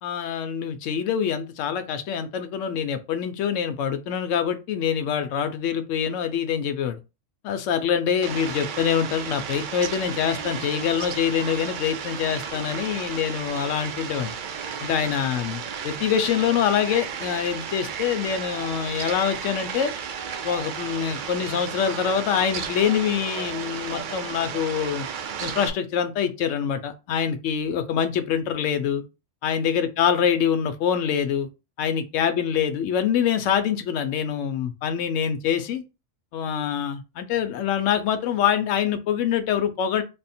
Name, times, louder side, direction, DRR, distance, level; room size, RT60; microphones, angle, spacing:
voice 1, 0.0-7.0 7.4-14.3 14.8-19.9 20.4-25.1 25.4-29.0 29.4-31.5 31.8-35.8 36.3-40.0, left 8 dB, 75° left, 0.9 m, -25 dB
Fowl, 8.2-25.7, right 7 dB, 70° right, 0.4 m, -33 dB
3.4 x 2.0 x 4.2 m
omnidirectional pair, 1.3 m